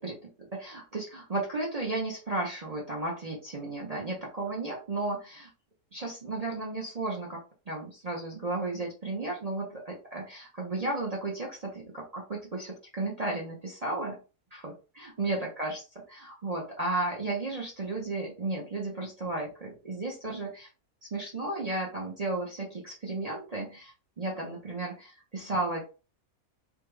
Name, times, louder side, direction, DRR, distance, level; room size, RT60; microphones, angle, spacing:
voice 1, 0.0-5.5 5.9-7.4 7.7-14.2 14.5-15.8 16.1-20.7 21.1-25.8, right 2 dB, 35° right, -1 dB, 0.6 m, -34 dB
3.4 x 2.3 x 3.2 m, 0.32 s
omnidirectional pair, 1.5 m